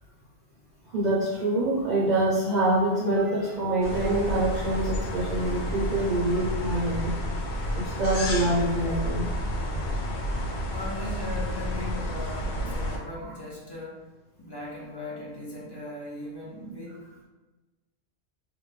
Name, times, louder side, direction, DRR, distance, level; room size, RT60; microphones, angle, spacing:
voice 1, 0.9-7.1 7.7-9.3 13.2-13.3, right 1 dB, 45° right, -7 dB, 0.7 m, -25 dB
sound 1, 3.8-13.0, equal, 75° left, 0.9 m, -30 dB
voice 2, 10.7-14.0 14.4-17.1, left 1 dB, 30° left, -5 dB, 0.5 m, -38 dB
3.4 x 2.2 x 3.2 m, 1.2 s
omnidirectional pair, 1.1 m